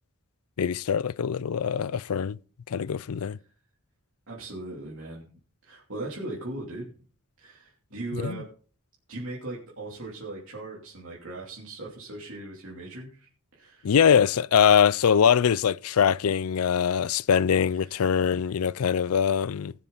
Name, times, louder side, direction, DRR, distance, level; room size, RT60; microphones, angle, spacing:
voice 1, 0.6-2.4 2.7-3.4 8.2-8.4 13.8-19.7, left 7 dB, 80° left, 0.4 m, -23 dB
voice 2, 4.3-5.2 5.6-6.9 7.4-8.4 9.1-13.3 13.5-13.9 16.7-17.2 17.8-18.5, right 2 dB, 60° right, 3.1 m, -39 dB
20.0 x 7.3 x 4.0 m
head